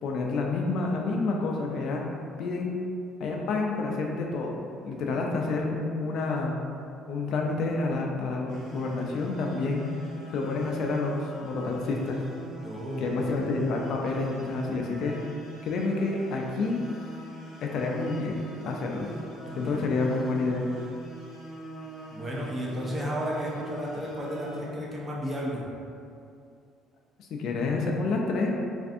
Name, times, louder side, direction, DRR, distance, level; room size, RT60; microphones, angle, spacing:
voice 1, 0.0-2.1 2.4-2.7 3.2-6.6 7.1-9.9 10.3-12.2 13.0-15.2 15.6-16.8 17.6-19.1 19.6-20.7 27.3-28.5, left 3 dB, 55° left, 0 dB, 0.3 m, -29 dB
sound 1, 8.5-24.6, right 2 dB, 55° right, 1.0 m, -43 dB
voice 2, 12.6-13.2 19.4-19.8 22.1-25.6, equal, 20° right, -4 dB, 0.5 m, -33 dB
3.3 x 2.5 x 2.5 m, 2.5 s
cardioid pair, 145°, 0 cm